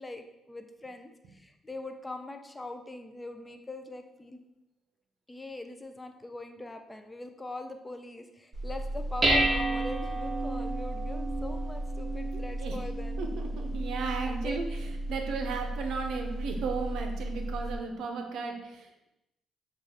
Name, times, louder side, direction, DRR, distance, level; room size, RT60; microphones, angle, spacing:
voice 1, 0.0-4.4 5.3-13.2 14.3-14.6, left 2 dB, 15° left, 6 dB, 0.4 m, -42 dB
Dishes pots and pans, 8.5-17.8, right 1 dB, 25° right, 0.6 m, -32 dB
voice 2, 12.3-12.8 13.2-19.1, right 4 dB, 80° right, 4 dB, 0.5 m, -35 dB
6.2 x 2.4 x 2.7 m, 0.91 s
cardioid pair, 110°, 0 cm